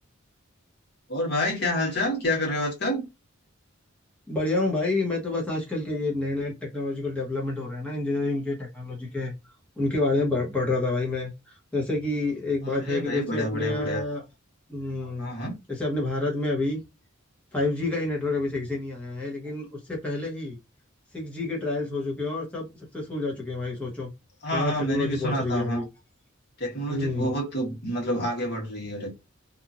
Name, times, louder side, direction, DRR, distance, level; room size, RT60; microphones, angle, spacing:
voice 1, 1.1-3.1 12.6-14.0 15.2-15.6 24.4-25.8 26.6-29.2, equal, 55° left, 1.4 m, -28 dB
voice 2, 4.3-14.2 14.7-15.3 15.7-16.8 17.5-20.6 21.1-24.1 24.5-25.9 26.9-27.3, left 2 dB, 5° left, 0.9 m, -28 dB
2.8 x 2.5 x 2.5 m
head